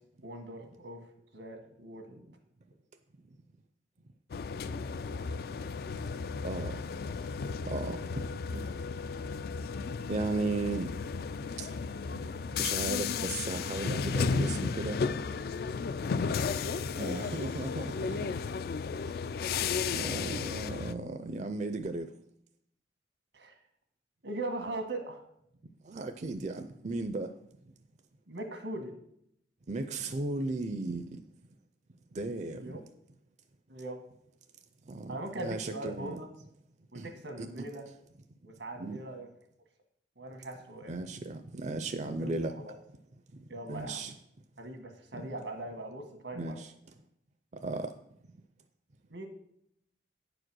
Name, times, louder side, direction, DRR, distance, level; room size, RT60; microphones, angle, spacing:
voice 1, 0.2-1.0 1.3-2.2 23.3-23.6 24.2-25.3 28.3-28.9 32.5-32.8 33.7-34.0 35.1-36.3 36.9-37.8 38.4-39.3 40.2-40.9 42.0-42.3 42.6-42.7 43.5-44.0 44.6-46.6 49.1-49.3, right 2 dB, 90° right, 1.6 m, -40 dB
sound 1, 4.3-20.9, left 5 dB, 60° left, 0.3 m, -34 dB
voice 2, 6.4-6.8 7.6-8.3 8.5-8.7 10.0-10.9 11.6-11.7 12.5-15.0 16.9-18.3 18.8-19.0 19.9-22.1 25.8-27.4 29.7-31.2 32.1-32.8 34.8-36.2 36.9-37.1 37.4-37.5 38.8-39.0 40.9-42.6 43.3-44.1 45.1-45.2 46.3-46.7 47.5-47.9, right 2 dB, 40° right, 0.5 m, -36 dB
9.4 x 5.0 x 6.2 m
head